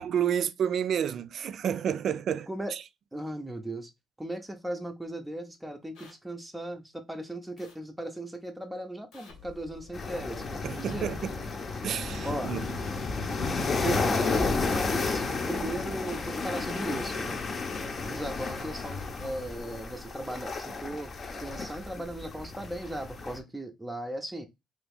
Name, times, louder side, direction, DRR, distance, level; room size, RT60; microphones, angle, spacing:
voice 1, 0.0-2.8 10.6-11.4 11.8-12.6, right 8 dB, 60° right, 0.3 m, -30 dB
voice 2, 3.1-3.9 4.2-11.1 12.2-12.5 13.6-17.4 18.1-21.1 21.4-24.5, right 1 dB, 5° right, 0.6 m, -37 dB
sound 1, 5.9-6.1 7.6-7.8 9.1-9.3 10.8-11.0 12.5-12.7 14.3-14.5 16.0-16.2 17.7-17.9, left 4 dB, 90° left, 1.4 m, -52 dB
sound 2, 9.3-20.1, left 4 dB, 65° left, 1.0 m, -47 dB
sound 3, 9.9-23.4, left 4 dB, 40° left, 0.7 m, -32 dB
2.8 x 2.6 x 3.5 m
cardioid pair, 90°, 0 cm